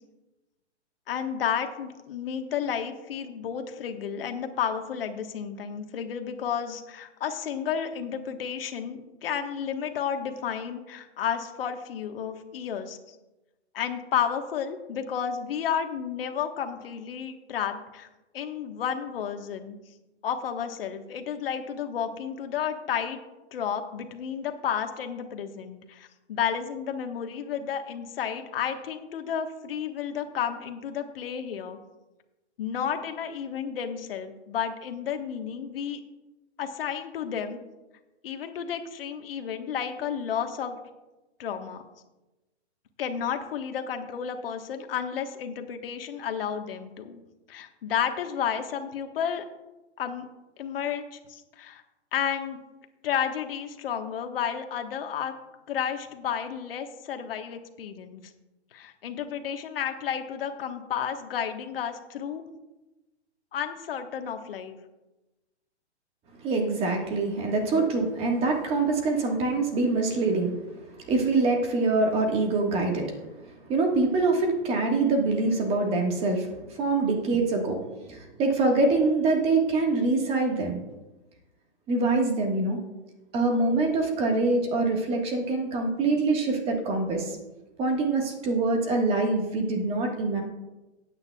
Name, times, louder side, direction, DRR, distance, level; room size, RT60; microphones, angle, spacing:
voice 1, 1.1-13.1 13.7-18.1 18.3-19.8 20.2-23.2 23.5-31.8 32.6-36.0 36.6-37.6 38.2-40.8 41.4-41.8 43.0-47.2 47.5-49.4 50.0-50.3 50.6-51.8 52.1-52.6 53.0-55.3 55.7-58.2 58.7-62.4 63.5-64.8, left 8 dB, 55° left, 6 dB, 1.3 m, -32 dB
voice 2, 66.4-70.6 71.1-73.1 73.7-80.8 81.9-82.8 83.3-87.4 87.8-90.4, right 3 dB, 15° right, 2 dB, 1.5 m, -25 dB
17.0 x 9.0 x 2.3 m, 1.1 s
hypercardioid pair, 155°, 35 cm